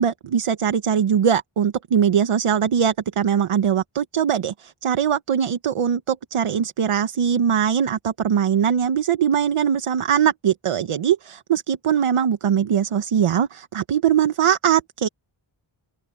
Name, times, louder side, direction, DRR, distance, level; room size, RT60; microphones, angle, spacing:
voice 1, 0.0-15.1, right 8 dB, 85° right, 1.0 m, -21 dB
open air
wide cardioid pair, 75°, 50 cm